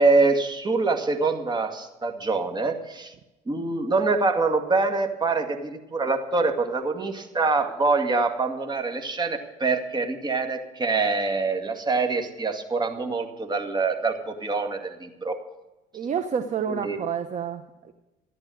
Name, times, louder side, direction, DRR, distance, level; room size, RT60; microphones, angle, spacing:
voice 1, 0.0-3.1 3.5-15.4 16.7-17.0, right 3 dB, 25° right, 4 dB, 2.1 m, -25 dB
voice 2, 15.9-17.9, right 7 dB, 45° right, 8 dB, 1.0 m, -29 dB
14.0 x 10.5 x 7.9 m, 1.0 s
cardioid pair, 110°, 17 cm